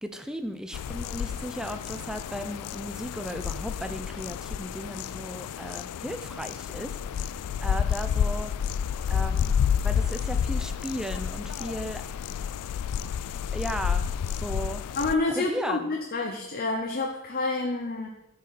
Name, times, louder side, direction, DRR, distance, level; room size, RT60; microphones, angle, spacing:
voice 1, 0.0-8.5 9.1-9.5 9.8-12.0 13.5-14.8 15.3-16.0, equal, 5° right, 7 dB, 0.5 m, -36 dB
sound 1, 0.7-15.1, left 8 dB, 90° left, 0.3 m, -30 dB
voice 2, 15.0-18.1, left 3 dB, 40° left, 1 dB, 0.8 m, -28 dB
13.0 x 5.2 x 4.2 m, 0.92 s
head